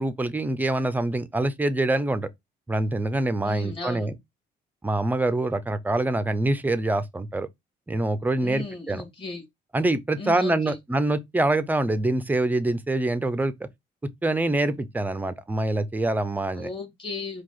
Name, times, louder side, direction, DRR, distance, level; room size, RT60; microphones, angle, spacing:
voice 1, 0.0-2.3 2.7-4.1 4.8-7.5 7.9-9.0 9.7-13.5 14.2-16.7, right 2 dB, 10° right, 0.5 m, -25 dB
voice 2, 3.4-4.1 8.4-9.4 10.2-10.8 16.5-17.4, left 3 dB, 30° left, 2.3 m, -36 dB
4.7 x 2.3 x 3.9 m
cardioid pair, 110°, 17 cm